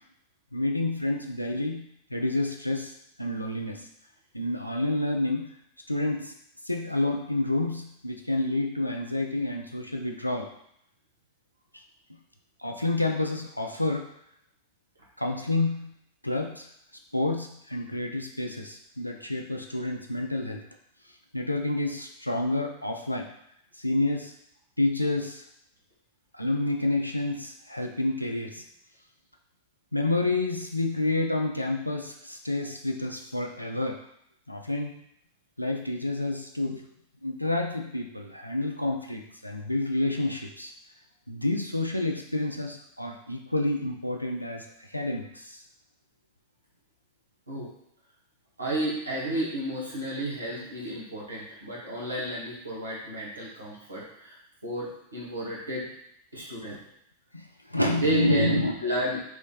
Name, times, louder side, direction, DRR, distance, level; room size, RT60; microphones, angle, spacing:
voice 1, 0.5-3.9 4.3-5.5 5.9-6.3 6.6-10.5 11.7-11.8 12.6-14.1 15.2-15.9 16.2-16.7 17.1-20.6 21.3-23.3 23.8-24.3 24.8-25.4 26.3-28.6 29.9-34.0 34.5-34.9 35.6-36.8 37.2-40.7 41.3-45.6 56.7-56.8 57.3-58.8, left 2 dB, 90° left, 2 dB, 0.4 m, -29 dB
voice 2, 48.6-54.4 54.6-55.9 56.3-56.8 58.0-59.2, right 1 dB, 80° right, -5 dB, 1.3 m, -32 dB
3.4 x 3.1 x 3.8 m, 0.74 s
figure-of-eight pair, 90°, 0 cm